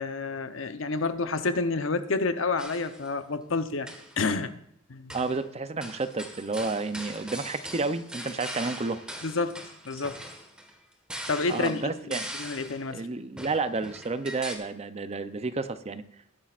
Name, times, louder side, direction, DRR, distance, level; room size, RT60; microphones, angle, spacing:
voice 1, 0.0-3.9 4.2-4.5 4.9-5.2 9.2-10.2 11.3-13.1, left 3 dB, 75° left, 10 dB, 0.8 m, -29 dB
sound 1, 2.6-3.1 3.7-4.2 5.1-5.4 5.8-12.9 13.4-14.6, equal, 5° right, 1.5 m, -41 dB
voice 2, 5.1-9.0 11.5-12.2 12.9-16.0, right 3 dB, 30° right, 11 dB, 0.6 m, -31 dB
20.0 x 10.0 x 2.5 m, 0.69 s
head